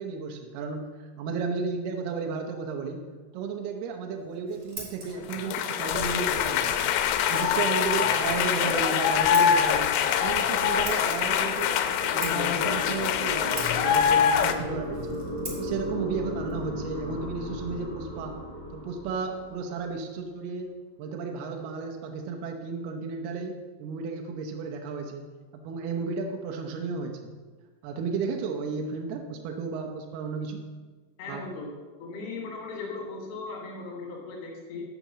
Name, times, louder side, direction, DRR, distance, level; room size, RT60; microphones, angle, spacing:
voice 1, 0.0-3.0 3.3-6.9 7.3-11.8 12.1-15.2 15.6-18.4 18.7-20.7 21.0-25.3 25.5-27.3 27.8-30.7 31.3-31.5, right 5 dB, 75° right, 3 dB, 2.5 m, -33 dB
Scissors, 4.2-17.7, right 3 dB, 40° right, 2.0 m, -46 dB
sound 1, 5.3-14.5, left 8 dB, 85° left, 2.8 m, -24 dB
sound 2, 10.0-20.0, left 1 dB, 25° left, 0.4 m, -37 dB
voice 2, 31.2-31.7 32.0-34.8, left 3 dB, 45° left, -2 dB, 2.9 m, -37 dB
8.4 x 6.0 x 7.2 m, 1.4 s
omnidirectional pair, 5.3 m